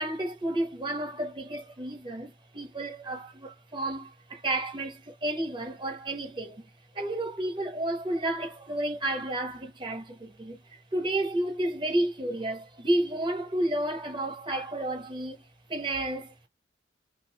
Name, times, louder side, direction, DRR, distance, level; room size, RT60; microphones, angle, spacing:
voice 1, 0.0-6.7 6.9-10.6 10.9-15.4 15.7-16.5, right 1 dB, 25° right, 0.9 m, -31 dB
2.5 x 2.5 x 3.3 m
head